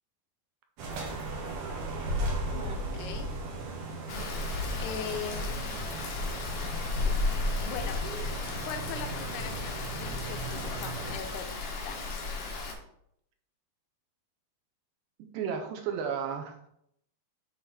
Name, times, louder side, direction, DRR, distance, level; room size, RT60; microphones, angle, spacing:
sound 1, 0.8-11.2, right 2 dB, 65° right, 2.6 m, -37 dB
voice 1, 2.5-3.4 4.8-5.8 7.6-8.0 8.6-11.5 11.8-12.2, left 7 dB, 90° left, 5 dB, 1.8 m, -40 dB
Rain, 4.1-12.7, left 3 dB, 70° left, 1.4 m, -34 dB
voice 2, 15.3-16.7, right 7 dB, 80° right, 4 dB, 2.2 m, -33 dB
7.7 x 3.8 x 4.2 m, 0.74 s
omnidirectional pair, 4.4 m